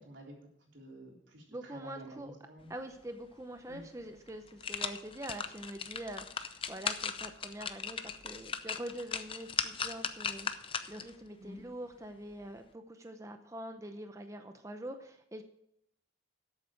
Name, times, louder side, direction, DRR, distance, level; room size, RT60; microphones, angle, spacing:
voice 1, 0.0-2.7 3.7-3.8 11.4-11.6, right 1 dB, 90° right, -1 dB, 3.8 m, -50 dB
voice 2, 1.5-2.3 2.7-15.4, right 1 dB, 15° right, 6 dB, 0.7 m, -45 dB
sound 1, 3.7-3.8 4.3-11.1 11.6-11.7, left 6 dB, 30° left, 0.6 m, -38 dB
13.0 x 8.1 x 4.7 m, 0.77 s
head